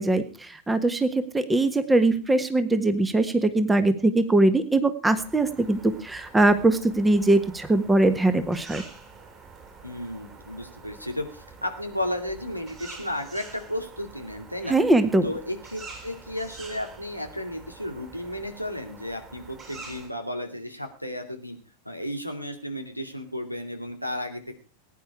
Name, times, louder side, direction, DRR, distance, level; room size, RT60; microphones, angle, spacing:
voice 1, 0.0-8.8 14.7-15.2, right 2 dB, 10° right, 11 dB, 1.5 m, -21 dB
sound 1, 5.1-20.1, right 4 dB, 25° right, 7.5 m, -46 dB
voice 2, 9.8-14.8 15.2-21.6 21.8-24.5, left 1 dB, 90° right, 6 dB, 2.5 m, -33 dB
20.0 x 10.0 x 4.8 m, 0.35 s
figure-of-eight pair, 90°, 0 cm